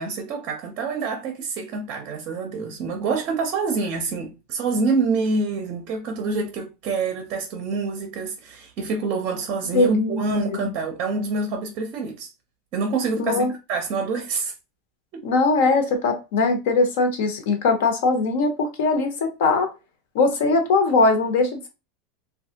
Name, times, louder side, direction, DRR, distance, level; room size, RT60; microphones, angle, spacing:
voice 1, 0.0-12.3 12.7-14.5 15.1-15.2, right 4 dB, 35° right, 0.5 m, -26 dB
voice 2, 9.7-10.2 10.5-10.7 13.2-13.5 15.2-19.7 20.1-21.7, left 3 dB, 60° left, 0.8 m, -21 dB
3.1 x 2.3 x 2.8 m
supercardioid pair, 175°, 0 cm